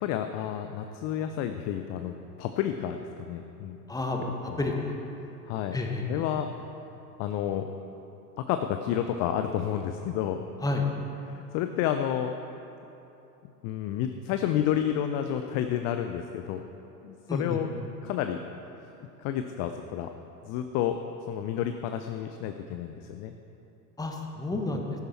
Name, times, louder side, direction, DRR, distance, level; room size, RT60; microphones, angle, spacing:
voice 1, 0.0-3.8 4.5-4.8 5.5-5.8 6.1-6.5 7.2-7.7 8.5-10.5 11.3-12.3 13.6-16.6 17.0-17.7 18.0-18.4 19.2-20.1 20.4-21.0 21.3-23.3, left 10 dB, 35° left, 7 dB, 0.6 m, -30 dB
voice 2, 3.9-4.9 5.7-6.2 10.6-10.9 17.3-17.6 24.0-24.8, left 2 dB, 5° left, 2 dB, 1.5 m, -30 dB
14.5 x 11.5 x 4.4 m, 2.9 s
figure-of-eight pair, 85°, 49 cm